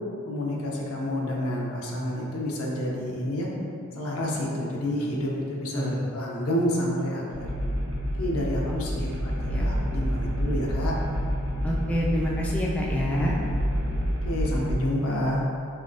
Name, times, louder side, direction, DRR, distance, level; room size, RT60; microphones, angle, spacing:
voice 1, 0.2-3.5 3.9-7.5 8.2-10.9 14.2-15.4, left 1 dB, 80° left, -3 dB, 0.7 m, -29 dB
voice 2, 5.7-6.1 9.0-9.1 9.5-9.7 11.6-13.4, equal, 5° left, -4 dB, 0.3 m, -27 dB
sound 1, 7.3-14.7, equal, 70° right, 0.8 m, -28 dB
3.8 x 3.3 x 2.6 m, 2.5 s
head